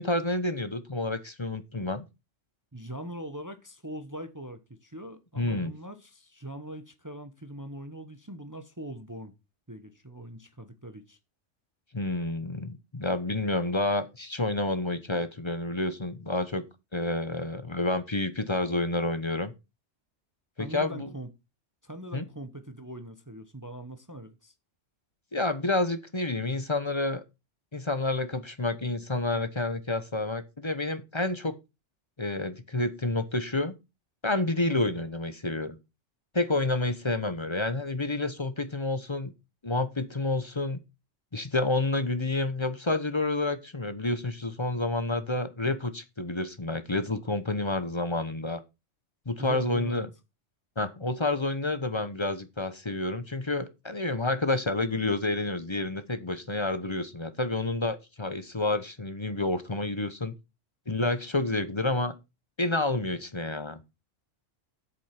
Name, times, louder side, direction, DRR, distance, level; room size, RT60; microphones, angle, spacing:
voice 1, 0.0-2.0 5.4-5.7 11.9-16.6 16.9-19.5 20.6-21.1 22.1-22.2 25.3-27.2 27.7-31.6 32.2-33.7 34.2-35.8 36.3-39.3 39.6-40.8 41.3-48.6 49.3-50.1 50.8-60.3 60.9-62.1 62.6-63.8, left 2 dB, 25° left, 0.9 m, -29 dB
voice 2, 2.7-9.3 9.7-11.2 20.6-21.3 21.8-24.5 34.6-34.8 49.4-50.1, right 1 dB, 15° right, 1.0 m, -41 dB
8.3 x 7.4 x 5.9 m
omnidirectional pair, 1.3 m